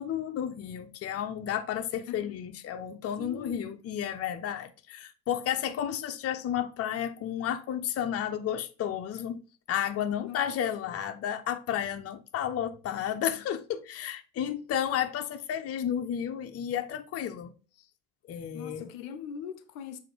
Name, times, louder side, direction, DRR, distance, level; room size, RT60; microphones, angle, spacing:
voice 1, 0.0-9.4 9.7-17.5 18.3-18.9, left 9 dB, 30° left, 0.8 m, -32 dB
voice 2, 3.2-3.7 10.2-10.9 18.5-20.0, left 8 dB, 60° left, 0.8 m, -41 dB
7.6 x 2.8 x 4.6 m
figure-of-eight pair, 75°, 46 cm